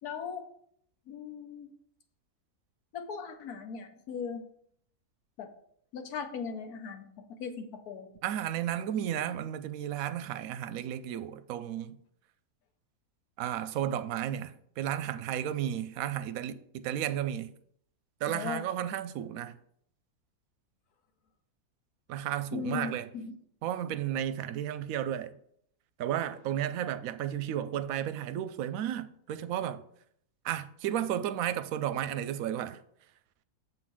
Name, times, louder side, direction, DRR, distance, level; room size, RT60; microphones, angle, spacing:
voice 1, 0.0-0.4 1.1-1.7 2.9-4.4 5.4-5.5 5.9-7.1 7.4-8.1 18.3-18.6 22.5-23.4, left 6 dB, 75° left, 1.4 m, -38 dB
voice 2, 8.2-12.0 13.4-17.5 18.2-19.6 22.1-23.1 23.6-25.4 26.0-29.8 30.4-32.8, right 11 dB, 70° right, 0.9 m, -33 dB
7.4 x 3.9 x 6.1 m
omnidirectional pair, 1.7 m